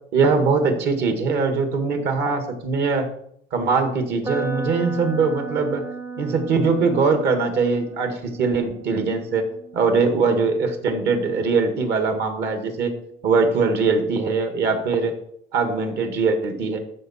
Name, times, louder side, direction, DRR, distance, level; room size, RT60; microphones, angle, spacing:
voice 1, 0.1-3.1 3.5-5.8 6.2-9.5 9.7-12.9 13.2-15.1 15.5-16.8, right 4 dB, 60° right, 6 dB, 1.9 m, -21 dB
sound 1, 4.2-12.2, right 3 dB, 15° right, 0.6 m, -36 dB
13.5 x 5.8 x 4.3 m, 0.69 s
cardioid pair, 130°, 20 cm